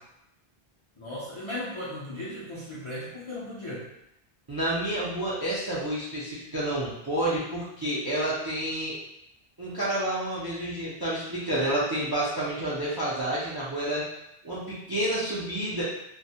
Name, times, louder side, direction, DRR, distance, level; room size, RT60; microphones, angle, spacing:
voice 1, 1.0-3.9, left 1 dB, 50° left, -9 dB, 0.3 m, -36 dB
voice 2, 4.5-9.0 9.6-14.0 14.4-15.8, right 1 dB, 40° right, -8 dB, 0.3 m, -29 dB
2.2 x 2.0 x 2.7 m, 0.81 s
omnidirectional pair, 1.0 m